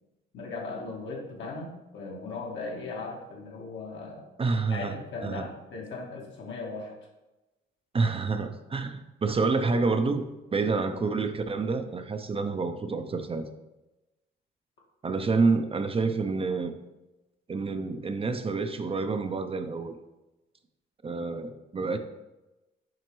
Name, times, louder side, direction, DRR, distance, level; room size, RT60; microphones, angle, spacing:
voice 1, 0.3-4.3 4.7-6.9, left 3 dB, 70° left, -1 dB, 1.7 m, -38 dB
voice 2, 4.4-4.9 5.2-5.5 7.9-13.4 15.0-16.8 17.5-19.9 21.0-22.0, right 4 dB, 30° right, 8 dB, 0.5 m, -28 dB
7.5 x 5.0 x 3.1 m, 1.0 s
cardioid pair, 90°, 20 cm